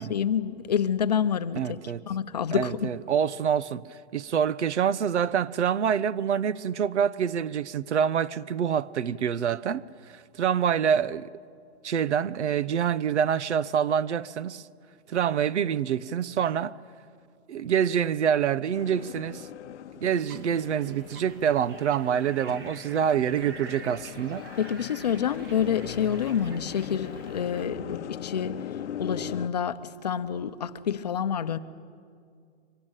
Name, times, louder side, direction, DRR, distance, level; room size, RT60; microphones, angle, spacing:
voice 1, 0.0-2.9 24.6-31.6, left 8 dB, 35° left, 0.7 m, -28 dB
voice 2, 1.6-2.0 2.5-9.8 10.1-11.3 11.8-14.6 15.1-16.8 17.5-19.5 20.0-24.5, right 8 dB, 80° right, 0.9 m, -26 dB
sound 1, 18.7-29.5, left 10 dB, 85° left, 0.8 m, -40 dB
sound 2, 20.1-27.7, right 3 dB, 20° right, 1.0 m, -48 dB
24.5 x 18.5 x 9.0 m
hypercardioid pair, 180°, 34 cm